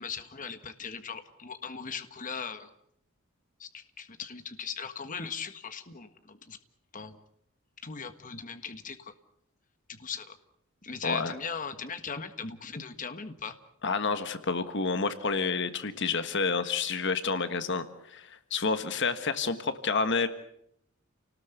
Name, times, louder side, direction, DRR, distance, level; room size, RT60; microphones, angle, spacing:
voice 1, 0.0-2.7 3.6-6.6 6.9-7.2 7.8-9.1 9.9-10.4 10.8-13.5, left 6 dB, 40° left, 9 dB, 1.6 m, -39 dB
voice 2, 11.0-11.3 13.8-20.3, left 4 dB, 60° left, 10 dB, 1.5 m, -29 dB
29.5 x 19.5 x 8.2 m, 0.74 s
head